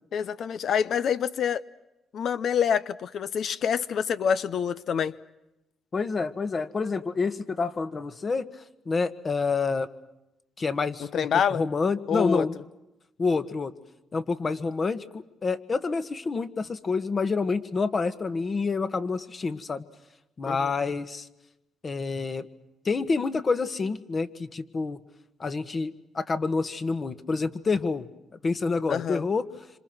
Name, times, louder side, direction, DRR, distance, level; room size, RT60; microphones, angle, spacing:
voice 1, 0.1-1.6 2.1-5.1 11.1-11.6 12.1-12.5 20.5-20.6 28.9-29.2, left 7 dB, 65° left, 15 dB, 0.8 m, -26 dB
voice 2, 5.9-8.5 8.8-9.9 10.6-12.6 13.2-13.7 14.1-19.8 20.4-21.3 21.8-22.5 22.8-25.0 25.4-28.1 28.4-29.4, left 4 dB, 35° left, 12 dB, 1.7 m, -28 dB
27.5 x 26.5 x 6.2 m, 0.93 s
cardioid pair, 90°, 0 cm